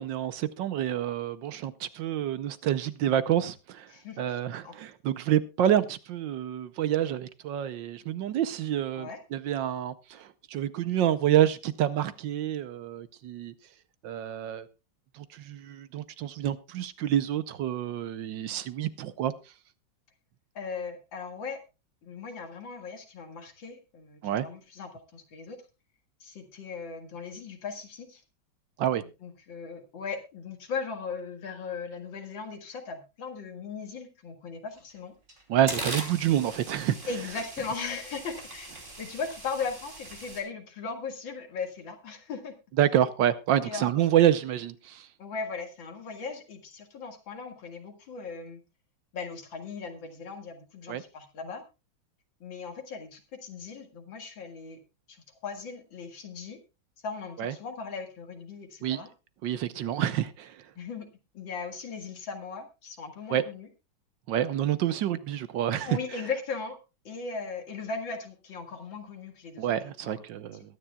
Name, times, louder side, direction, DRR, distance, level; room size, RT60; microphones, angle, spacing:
voice 1, 0.0-3.9 4.2-13.5 14.0-14.7 15.1-19.3 24.2-24.5 28.8-29.0 35.5-37.0 42.8-45.1 50.9-51.0 57.4-57.5 58.8-59.0 59.4-60.6 63.3-63.4 64.3-66.0 69.6-70.6, right 11 dB, 70° right, 1.4 m, -28 dB
voice 2, 3.9-4.7 8.9-9.2 20.5-21.6 22.0-25.6 26.2-28.2 29.2-35.1 37.1-42.5 43.6-43.9 45.2-48.6 49.1-51.6 52.4-54.8 55.1-55.2 55.4-56.6 57.0-59.1 60.8-63.7 65.8-66.8 67.0-69.7 70.0-70.1, left 5 dB, 70° left, 2.7 m, -38 dB
sound 1, 34.8-34.9 35.3-40.4, right 2 dB, 25° right, 3.0 m, -40 dB
22.0 x 9.8 x 2.3 m
omnidirectional pair, 2.2 m